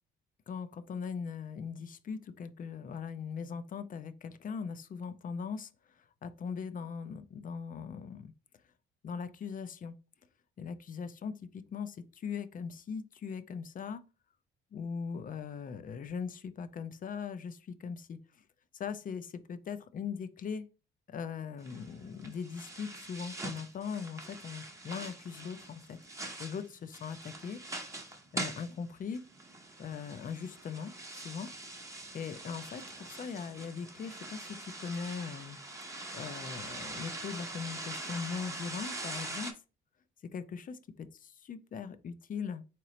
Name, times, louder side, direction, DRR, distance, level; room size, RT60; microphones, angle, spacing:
voice 1, 0.5-5.7 6.2-8.3 9.0-10.0 10.6-14.0 14.7-18.2 18.7-20.7 21.1-26.0 26.4-27.6 28.3-29.2 29.8-31.5 32.1-35.6 36.1-39.5 40.2-42.7, left 6 dB, 45° left, 0.5 m, -40 dB
sound 1, 21.6-39.5, right 2 dB, 15° right, 0.7 m, -43 dB
3.8 x 2.9 x 3.0 m
cardioid pair, 90°, 20 cm